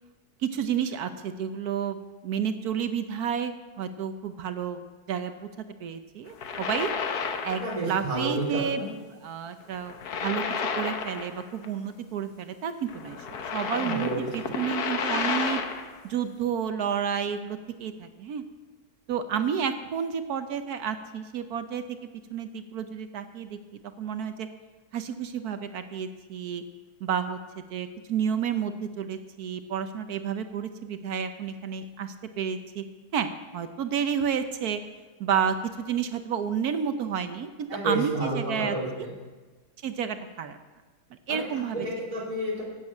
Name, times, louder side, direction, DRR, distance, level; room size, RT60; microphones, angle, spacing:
voice 1, 0.4-4.8 5.1-5.5 5.8-6.9 7.4-7.6 7.9-8.8 9.2-10.4 10.7-13.3 13.5-15.6 16.0-18.4 19.1-21.8 22.3-23.6 24.0-24.5 24.9-26.6 27.0-32.8 33.1-34.8 35.2-38.8 39.8-40.6 41.3-41.9, right 7 dB, 70° right, 9 dB, 1.2 m, -30 dB
sound 1, 6.3-7.9 8.2-8.4 9.7-11.7 11.9-12.0 12.9-16.0, left 5 dB, 70° left, 1.5 m, -31 dB
voice 2, 7.6-8.9 13.7-14.5 37.7-39.1 41.3-42.6, right 1 dB, 20° right, -7 dB, 3.0 m, -31 dB
12.0 x 8.0 x 8.6 m, 1.3 s
omnidirectional pair, 1.7 m